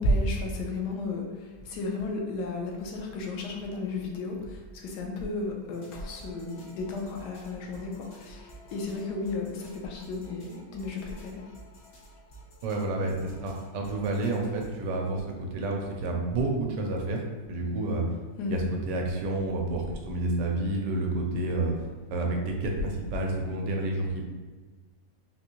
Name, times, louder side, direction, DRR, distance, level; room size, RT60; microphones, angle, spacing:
voice 1, 0.0-11.4 18.4-18.7, left 2 dB, 75° left, 1 dB, 1.2 m, -33 dB
sound 1, 5.7-14.8, right 1 dB, 50° left, 0.9 m, -52 dB
voice 2, 12.6-17.2 17.5-18.0 18.5-21.7 22.1-24.2, right 2 dB, 85° right, 1 dB, 1.2 m, -29 dB
3.9 x 2.6 x 2.8 m, 1.4 s
omnidirectional pair, 1.9 m